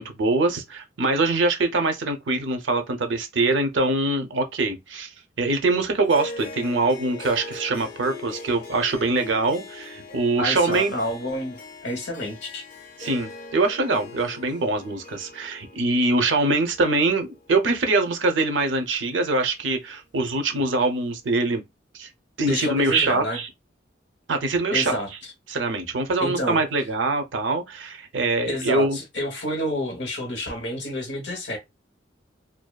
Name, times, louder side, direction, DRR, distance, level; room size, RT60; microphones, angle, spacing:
voice 1, 0.0-5.1 5.4-10.9 13.0-21.6 21.9-22.1 22.4-23.5 24.3-25.0 25.5-29.0, right 2 dB, 85° right, 0.6 m, -23 dB
Harp, 6.0-18.6, left 3 dB, 45° left, 0.5 m, -41 dB
voice 2, 10.4-12.6 22.5-23.4 24.7-25.1 26.2-26.6 28.5-31.6, left 1 dB, 70° left, 0.9 m, -29 dB
2.6 x 2.2 x 2.2 m
head